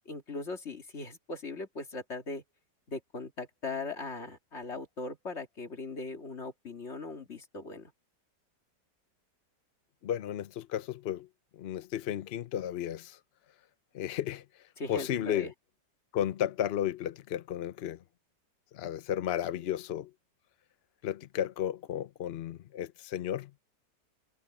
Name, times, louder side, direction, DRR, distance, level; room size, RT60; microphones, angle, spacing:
voice 1, 0.1-2.4 2.9-7.9 14.8-15.5, left 3 dB, 40° left, 2.4 m, -39 dB
voice 2, 10.0-11.3 11.6-13.2 13.9-14.4 14.9-15.5 16.1-18.0 18.7-20.1 21.0-23.5, left 10 dB, 75° left, 0.5 m, -33 dB
omnidirectional pair, 1.9 m